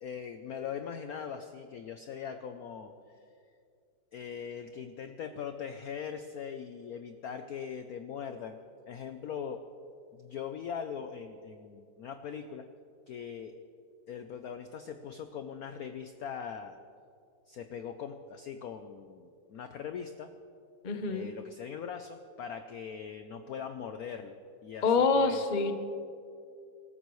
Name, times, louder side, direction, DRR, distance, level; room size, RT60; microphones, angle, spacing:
voice 1, 0.0-2.9 4.1-8.6 8.9-9.6 10.1-12.7 13.1-13.5 14.1-16.8 17.5-20.3 21.1-24.4 24.6-25.4, left 7 dB, 70° left, 7 dB, 0.8 m, -41 dB
voice 2, 20.8-21.3 24.8-25.7, left 4 dB, 40° left, 7 dB, 0.6 m, -26 dB
25.0 x 13.5 x 3.1 m, 2.4 s
omnidirectional pair, 2.2 m